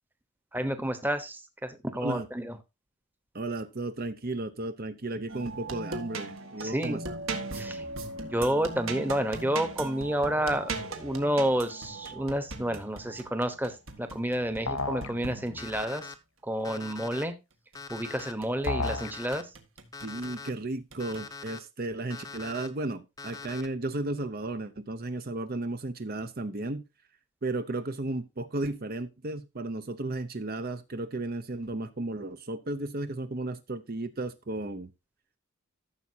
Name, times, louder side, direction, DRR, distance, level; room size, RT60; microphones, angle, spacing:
voice 1, 0.5-2.5 6.6-7.0 7.5-7.8 8.3-10.7 11.0-16.1 16.4-17.3 17.9-19.5, right 1 dB, 10° right, 1.0 m, -30 dB
voice 2, 3.3-7.2 20.0-26.8 27.4-34.9, right 2 dB, 40° right, 0.7 m, -34 dB
sound 1, 5.3-15.9 17.7-19.0 19.3-20.3 20.9-21.2, right 3 dB, 65° right, 1.7 m, -39 dB
sound 2, 14.7-15.1 18.7-19.1, left 3 dB, 65° left, 1.0 m, -30 dB
Alarm, 15.6-16.1 16.6-17.2 17.7-18.3 18.8-19.4 19.9-20.5 21.0-21.6 22.1-22.7 23.2-23.7, left 5 dB, 15° left, 0.7 m, -42 dB
14.0 x 7.1 x 2.8 m
head